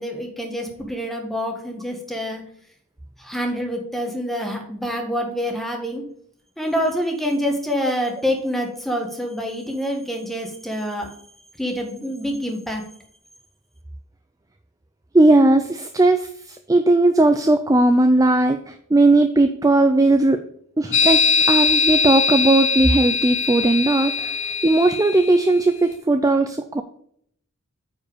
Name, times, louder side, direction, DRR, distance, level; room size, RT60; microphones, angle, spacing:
voice 1, 0.0-2.4 3.2-6.0 6.6-11.1 11.6-12.8, equal, ahead, 2 dB, 1.5 m, -26 dB
voice 2, 15.1-20.4 20.8-26.8, right 2 dB, 15° right, 8 dB, 0.4 m, -17 dB
sound 1, 20.9-25.6, left 5 dB, 60° left, 0.7 m, -21 dB
9.3 x 4.7 x 5.0 m, 0.66 s
head